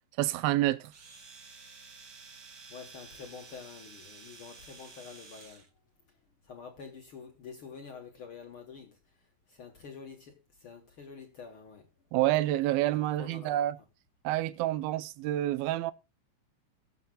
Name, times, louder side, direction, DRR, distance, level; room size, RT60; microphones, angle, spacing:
voice 1, 0.2-0.9 12.1-13.8 14.2-15.9, right 14 dB, 80° right, 2.5 m, -28 dB
Domestic sounds home sounds, 0.8-5.7, right 4 dB, 50° right, 1.3 m, -51 dB
voice 2, 2.7-5.7 6.1-6.2 6.4-11.9 12.9-13.7, left 6 dB, 75° left, 1.2 m, -48 dB
22.0 x 7.3 x 2.3 m
omnidirectional pair, 4.4 m